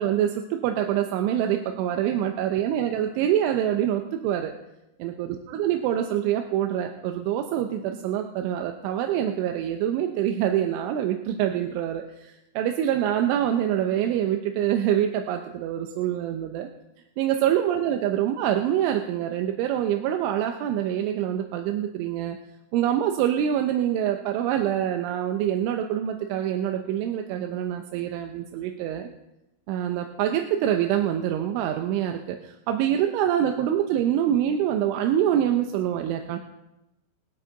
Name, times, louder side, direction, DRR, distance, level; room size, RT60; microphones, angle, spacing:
voice 1, 0.0-4.5 5.0-16.7 17.2-22.4 22.7-29.1 29.7-36.4, right 10 dB, 80° right, 5 dB, 3.1 m, -25 dB
23.5 x 8.1 x 3.9 m, 0.91 s
omnidirectional pair, 5.9 m